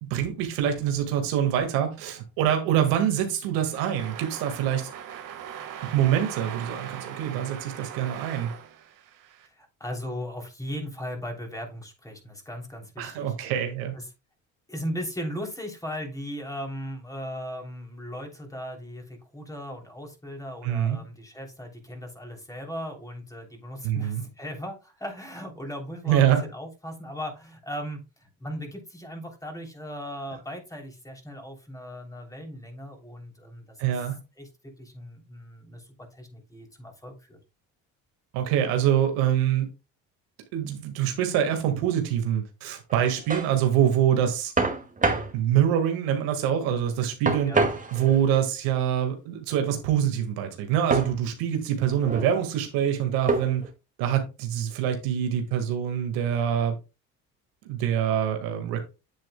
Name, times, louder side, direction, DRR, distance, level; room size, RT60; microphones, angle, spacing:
voice 1, 0.0-4.9 5.8-8.5 13.0-13.9 20.6-21.0 23.8-24.2 26.1-26.4 33.8-34.1 38.3-39.7 40.5-44.5 45.3-47.5 47.9-53.6 54.0-56.7 57.7-58.8, right 10 dB, 80° right, 1.8 m, -25 dB
sound 1, 3.7-9.5, right 9 dB, 60° right, 1.7 m, -40 dB
voice 2, 9.4-13.3 13.9-14.1 14.7-34.1 34.4-37.4 47.5-47.7, equal, 10° left, 3.2 m, -38 dB
sound 2, 42.9-43.5 44.6-45.3 47.3-48.3 50.9-51.2 51.9-52.3 53.3-53.7, right 3 dB, 20° right, 2.2 m, -26 dB
9.0 x 7.8 x 2.2 m
supercardioid pair, 85°, 35 cm